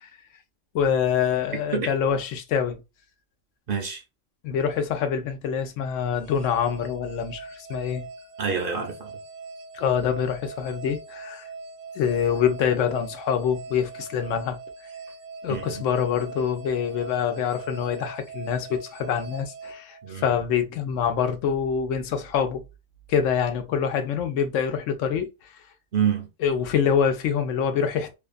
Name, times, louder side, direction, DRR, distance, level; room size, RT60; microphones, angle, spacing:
voice 1, 0.7-2.8 4.4-8.1 9.7-11.4 12.0-14.6 15.4-22.6 23.1-25.3 26.4-28.2, left 7 dB, 85° left, 0.9 m, -25 dB
voice 2, 3.7-4.0 8.4-9.2 15.5-15.8 20.0-20.4 25.9-26.3, right 7 dB, 55° right, 0.7 m, -27 dB
sound 1, 6.2-20.6, right 4 dB, 80° right, 0.9 m, -41 dB
2.5 x 2.4 x 2.4 m
omnidirectional pair, 1.3 m